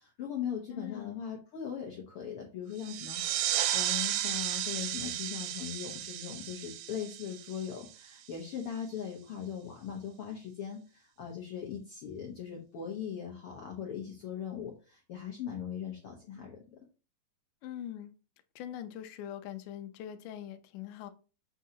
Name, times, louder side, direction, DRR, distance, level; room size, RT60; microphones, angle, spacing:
voice 1, 0.0-16.8, left 8 dB, 60° left, 1.6 m, -40 dB
voice 2, 0.7-1.3 17.6-18.1 18.6-21.1, left 10 dB, 80° left, 2.2 m, -42 dB
sound 1, 2.8-8.1, right 12 dB, 90° right, 1.5 m, -34 dB
7.2 x 6.3 x 2.8 m
omnidirectional pair, 3.9 m